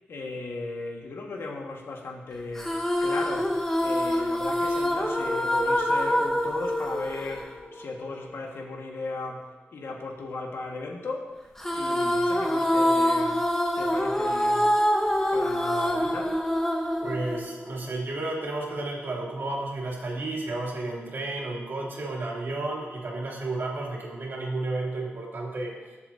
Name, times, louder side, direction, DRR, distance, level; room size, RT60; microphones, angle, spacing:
voice 1, 0.1-3.6 3.8-11.4 11.7-13.4 13.8-14.6 15.3-16.4, left 3 dB, 75° left, 0 dB, 1.7 m, -36 dB
sound 1, 2.6-8.1 11.6-18.0, equal, 10° left, 1.1 m, -25 dB
voice 2, 17.0-25.7, right 2 dB, 60° right, -3 dB, 2.8 m, -32 dB
21.5 x 7.2 x 2.8 m, 1.2 s
wide cardioid pair, 110°, 4 cm